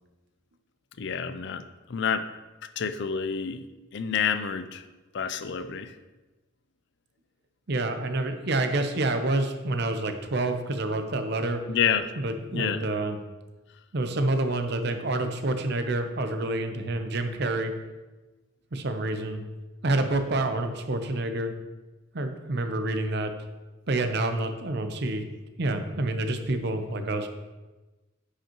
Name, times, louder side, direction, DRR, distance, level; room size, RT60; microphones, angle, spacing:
voice 1, 1.0-1.6 1.9-2.2 2.8-3.6 3.9-4.8 5.1-5.9 11.7-12.1 12.5-12.8, left 7 dB, 55° left, 10 dB, 0.4 m, -28 dB
voice 2, 7.7-11.6 12.2-13.2 13.9-17.7 18.7-19.4 19.8-21.5 22.1-23.3 23.9-25.3 25.6-27.3, right 2 dB, 55° right, 7 dB, 0.7 m, -28 dB
9.9 x 5.3 x 3.0 m, 1.2 s
head